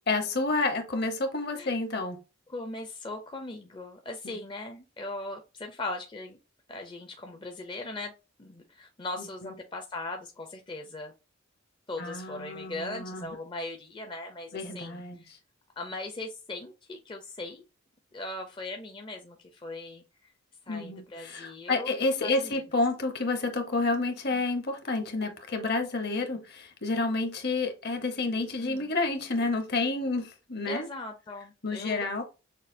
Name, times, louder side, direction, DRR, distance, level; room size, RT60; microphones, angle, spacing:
voice 1, 0.1-2.2 4.2-4.4 9.4-9.5 12.0-13.3 14.5-15.2 20.7-30.9 31.6-32.2, left 3 dB, 50° left, 0.9 m, -30 dB
voice 2, 2.5-6.4 6.7-8.1 8.4-11.1 11.9-15.3 15.8-17.6 18.1-20.0 20.7-22.6 24.3-24.4 28.6-28.9 30.7-32.2, left 2 dB, 25° left, 0.5 m, -39 dB
6.4 x 2.3 x 2.6 m
head